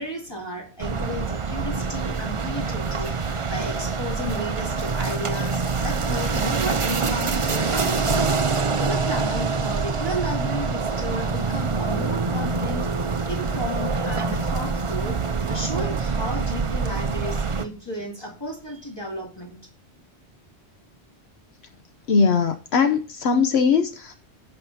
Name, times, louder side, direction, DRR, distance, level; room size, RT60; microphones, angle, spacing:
voice 1, 0.0-15.2 15.5-19.6, equal, 20° left, 2.7 m, -33 dB
sound 1, 0.8-17.6, right 4 dB, 35° right, 0.7 m, -25 dB
voice 2, 22.1-24.1, left 5 dB, 70° left, 1.0 m, -20 dB
16.0 x 5.7 x 2.7 m
omnidirectional pair, 1.1 m